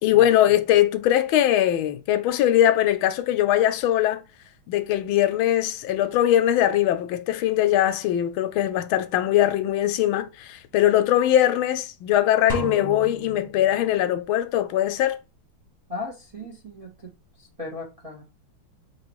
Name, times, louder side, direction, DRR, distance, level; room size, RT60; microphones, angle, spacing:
voice 1, 0.0-4.2 4.7-15.2, left 12 dB, 80° left, 1.4 m, -21 dB
sound 1, 12.5-14.3, equal, 15° left, 0.6 m, -34 dB
voice 2, 15.9-17.1 17.4-18.2, left 2 dB, 25° right, 0.8 m, -37 dB
4.8 x 3.0 x 3.0 m
omnidirectional pair, 2.3 m